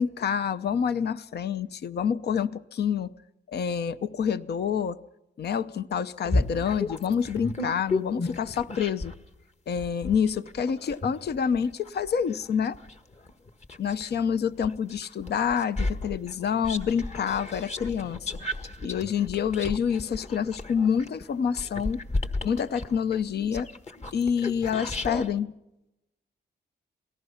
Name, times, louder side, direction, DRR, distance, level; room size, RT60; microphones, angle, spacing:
voice 1, 0.0-3.1 3.5-5.0 5.4-9.1 9.7-12.8 13.8-18.3 18.8-22.0 22.4-23.7 24.1-25.5, left 7 dB, 65° left, 0.8 m, -27 dB
sound 1, 6.2-9.2 9.8-14.1 14.6-25.3, left 2 dB, 40° left, 1.6 m, -33 dB
27.0 x 18.5 x 5.7 m
cardioid pair, 90°, 18 cm